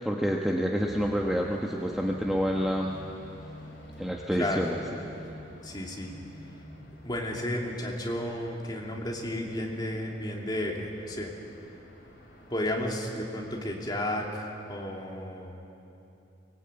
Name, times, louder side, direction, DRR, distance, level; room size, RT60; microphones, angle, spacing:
voice 1, 0.0-2.9 4.0-4.8, equal, ahead, -1 dB, 1.1 m, -28 dB
sound 1, 0.8-12.9, equal, 55° left, 4.2 m, -48 dB
voice 2, 4.4-4.7 5.6-6.1 7.0-11.3 12.5-15.6, left 1 dB, 20° left, -1 dB, 2.8 m, -33 dB
23.5 x 19.5 x 8.9 m, 2.9 s
head